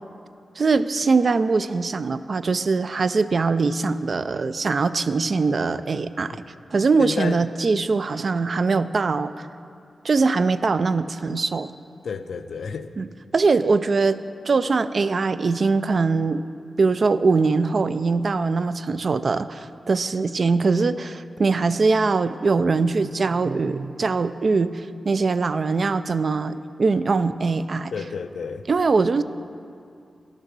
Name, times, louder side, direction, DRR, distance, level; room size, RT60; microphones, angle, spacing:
voice 1, 0.6-6.4 6.7-9.5 10.0-11.7 13.0-13.1 13.3-14.2 14.5-16.4 16.8-27.9 28.7-29.2, right 4 dB, 50° right, 13 dB, 0.3 m, -22 dB
voice 2, 7.0-7.4 12.0-12.9 27.9-28.6, left 5 dB, 85° left, 9 dB, 0.4 m, -30 dB
12.0 x 6.6 x 6.0 m, 2.5 s
wide cardioid pair, 115°, 0 cm